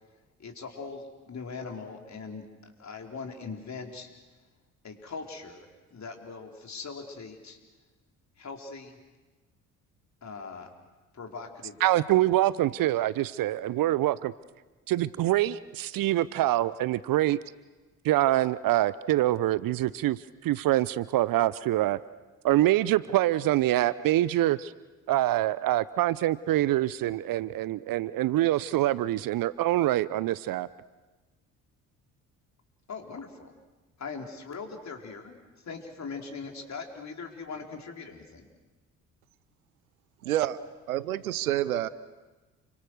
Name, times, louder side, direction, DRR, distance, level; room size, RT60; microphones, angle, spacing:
voice 1, 0.4-4.1 4.8-7.6 8.4-8.9 10.2-10.7 11.1-12.0 32.9-33.5 34.0-35.4 35.6-38.5, left 4 dB, 40° left, 3 dB, 4.6 m, -41 dB
voice 2, 11.8-14.3 14.9-17.4 18.0-22.0 22.4-24.7 25.1-30.7, right 15 dB, 55° right, 19 dB, 0.8 m, -25 dB
voice 3, 40.2-40.6 40.9-41.9, right 13 dB, 85° right, 18 dB, 0.8 m, -28 dB
29.5 x 24.5 x 6.5 m, 1.2 s
hypercardioid pair, 50°, 42 cm